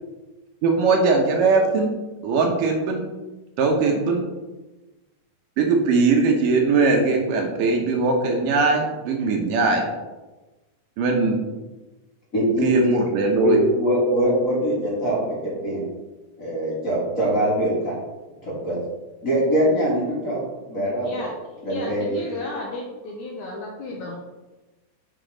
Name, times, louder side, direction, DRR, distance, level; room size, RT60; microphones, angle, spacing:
voice 1, 0.6-1.9 2.2-3.0 3.6-4.2 5.6-9.9 11.0-11.4 12.6-13.6, right 3 dB, 75° right, 2 dB, 2.3 m, -20 dB
voice 2, 12.3-13.0 13.4-15.8 16.4-18.0 18.4-18.8 19.2-20.4 20.7-21.2 21.6-22.2, right 1 dB, 25° left, -7 dB, 2.3 m, -22 dB
voice 3, 21.0-24.2, left 2 dB, 70° left, -1 dB, 1.9 m, -33 dB
8.1 x 5.0 x 3.8 m, 1.1 s
omnidirectional pair, 4.1 m